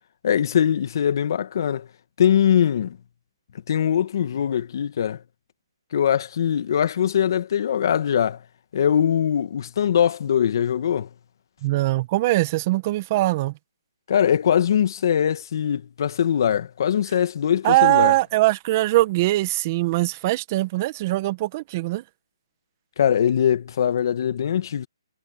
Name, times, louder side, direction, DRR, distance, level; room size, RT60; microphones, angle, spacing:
voice 1, 0.2-1.9 2.2-3.0 3.7-5.2 5.9-8.4 8.7-11.1 14.1-18.1 23.0-24.9, left 9 dB, 50° left, 2.0 m, -21 dB
voice 2, 11.6-13.5 17.6-22.0, right 18 dB, 30° right, 1.3 m, -21 dB
hypercardioid pair, 160°, 3 cm